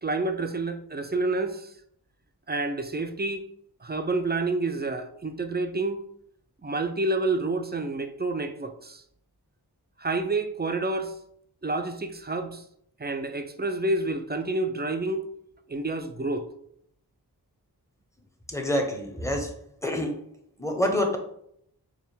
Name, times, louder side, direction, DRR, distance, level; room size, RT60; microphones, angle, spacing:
voice 1, 0.0-1.7 2.5-3.4 3.8-6.0 6.6-9.0 10.0-11.1 11.6-12.6 13.0-15.3 15.7-16.5, right 2 dB, 25° right, 7 dB, 0.4 m, -29 dB
voice 2, 18.5-20.2 20.6-21.2, left 1 dB, 5° left, 3 dB, 0.7 m, -27 dB
3.3 x 2.2 x 4.4 m, 0.70 s
wide cardioid pair, 40°, 40 cm